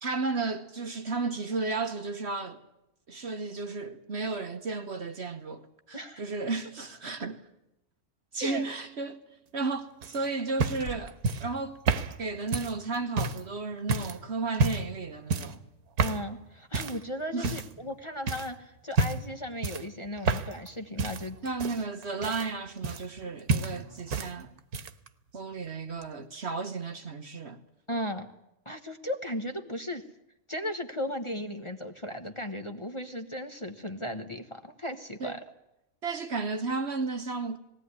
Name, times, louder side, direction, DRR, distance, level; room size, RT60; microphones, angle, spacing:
voice 1, 0.0-2.6 3.1-7.4 8.3-9.2 9.5-11.8 12.2-15.6 17.3-17.6 21.4-24.5 25.3-27.6 35.2-35.4 36.0-37.6, right 3 dB, 50° right, 1.2 m, -33 dB
sound 1, 10.0-13.5 13.9-14.2 14.5-15.0 15.3-15.6 16.0-16.3 16.7-17.0 17.4-17.9 18.3-18.5 18.9-19.3 19.6-20.7 21.0-23.2 23.5-24.3 24.6-25.1 26.0-26.1, right 3 dB, 90° right, 1.5 m, -30 dB
sound 2, 10.3-12.7 13.0-13.3, equal, 60° left, 3.8 m, -48 dB
voice 2, 16.0-21.4 27.9-28.3 28.6-30.0 30.5-35.4, left 1 dB, 20° left, 1.2 m, -36 dB
19.5 x 17.0 x 9.7 m
omnidirectional pair, 1.5 m